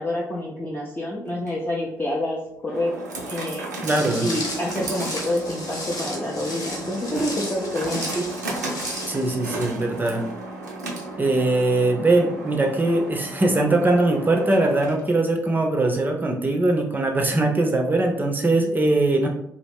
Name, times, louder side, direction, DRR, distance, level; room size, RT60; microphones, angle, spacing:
voice 1, 0.0-3.0 3.3-3.7 4.2-8.3, left 1 dB, 20° left, -4 dB, 0.6 m, -27 dB
sound 1, 1.3-15.2, right 2 dB, 85° right, 0.4 m, -35 dB
Walk footsteps, 3.8-9.3, left 1 dB, 45° left, 1.1 m, -34 dB
voice 2, 3.8-4.3 9.1-10.2 11.2-19.3, right 2 dB, 20° right, 2 dB, 0.6 m, -21 dB
3.0 x 2.4 x 3.3 m, 0.74 s
figure-of-eight pair, 40°, 9 cm